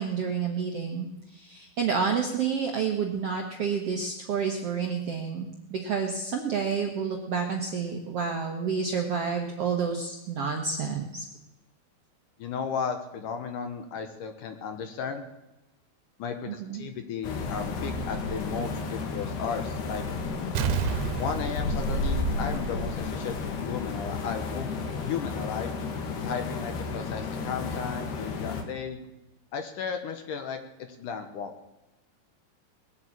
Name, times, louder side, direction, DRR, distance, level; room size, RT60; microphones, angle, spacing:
voice 1, 0.0-11.3 16.5-16.9, right 6 dB, 65° right, 2 dB, 1.5 m, -29 dB
voice 2, 12.4-15.3 16.2-20.0 21.2-24.7 25.0-25.7 26.2-29.0 29.5-30.6 31.0-31.5, left 6 dB, 65° left, 7 dB, 2.3 m, -34 dB
sound 1, 17.2-28.6, left 3 dB, 85° left, 3.9 m, -32 dB
Explosion, 20.6-23.2 23.5-23.6, right 8 dB, 85° right, 2.9 m, -31 dB
20.5 x 7.8 x 8.6 m, 0.97 s
omnidirectional pair, 4.6 m